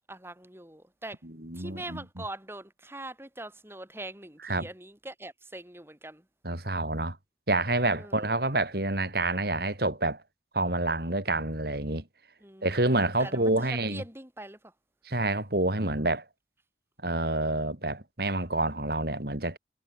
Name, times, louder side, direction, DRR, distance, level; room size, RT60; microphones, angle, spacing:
voice 1, 0.1-1.2 1.5-6.2 7.9-8.4 12.4-14.7, right 1 dB, 15° right, 5.7 m, -43 dB
voice 2, 1.2-2.0 4.4-4.7 6.4-7.2 7.5-10.2 10.5-12.0 12.6-14.0 15.1-16.2 17.0-19.6, right 2 dB, 55° right, 4.0 m, -28 dB
head